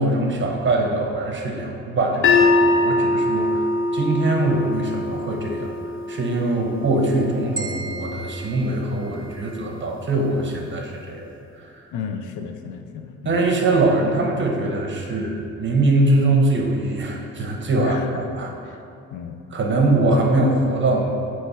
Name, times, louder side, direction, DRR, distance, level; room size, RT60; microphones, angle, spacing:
voice 1, 0.0-5.7 6.1-11.2 11.5-11.9 13.2-18.5 19.5-21.1, right 2 dB, 40° right, 1 dB, 1.0 m, -22 dB
sound 1, 2.2-8.4, left 2 dB, 45° left, 0.6 m, -23 dB
sound 2, 7.6-9.7, right 3 dB, 15° right, 0.8 m, -36 dB
voice 2, 11.9-13.4 17.8-18.1 18.5-18.6 19.1-19.4, left 7 dB, 85° left, 6 dB, 0.6 m, -32 dB
7.7 x 3.2 x 4.4 m, 2.7 s
cardioid pair, 90°, 30 cm